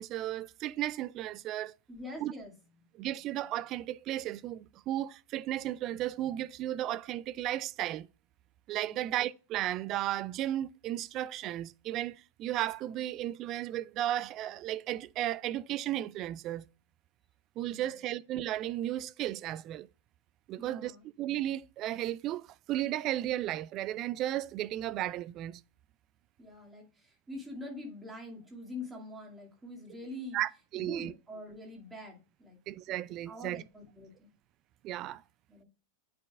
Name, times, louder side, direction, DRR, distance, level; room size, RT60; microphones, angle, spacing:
voice 1, 0.0-1.7 2.2-2.3 2.9-8.1 8.7-16.6 17.6-19.9 20.5-20.9 21.2-25.6 30.3-31.1 32.7-33.6 34.8-35.2, right 13 dB, 35° right, 0.3 m, -34 dB
voice 2, 1.9-2.5 8.8-9.1 17.7-17.9 20.6-21.0 26.4-30.4 30.7-32.6 33.3-34.3 35.5-35.6, left 1 dB, 10° right, 2.1 m, -44 dB
9.2 x 4.9 x 2.3 m
figure-of-eight pair, 90°, 0 cm